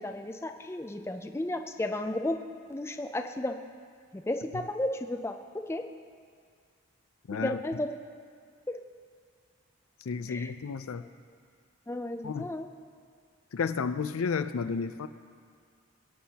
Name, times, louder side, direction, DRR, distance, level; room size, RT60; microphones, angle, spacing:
voice 1, 0.0-2.4 2.7-3.5 4.1-5.3 5.7-5.8 7.4-7.9 8.7-8.8 10.3-10.5 11.9-12.7, left 1 dB, 10° left, 5 dB, 0.4 m, -33 dB
voice 2, 7.3-7.6 10.1-11.1 12.2-12.5 13.5-15.1, left 5 dB, 85° left, 12 dB, 0.5 m, -32 dB
22.0 x 9.3 x 2.9 m, 2.1 s
head